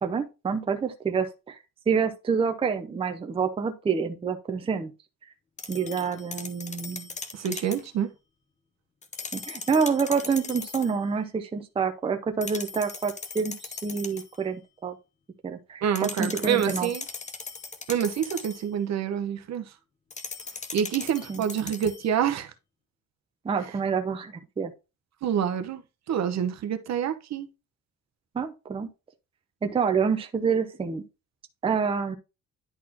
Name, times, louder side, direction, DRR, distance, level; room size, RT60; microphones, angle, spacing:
voice 1, 0.0-1.6 1.9-4.9 5.7-7.1 9.3-15.0 15.4-16.9 21.3-21.4 23.4-24.7 28.3-28.9 29.6-31.0 31.6-32.2, right 5 dB, 15° right, 0.6 m, -27 dB
sound 1, 5.6-7.9 9.0-11.0 12.4-14.4 16.0-18.7 20.1-22.1, left 4 dB, 20° left, 0.7 m, -39 dB
voice 2, 7.3-8.1 15.8-17.0 17.9-19.6 20.7-22.5 25.2-25.8 26.1-27.5, right 8 dB, 50° right, 0.8 m, -27 dB
10.5 x 4.1 x 2.8 m
cardioid pair, 175°, 34 cm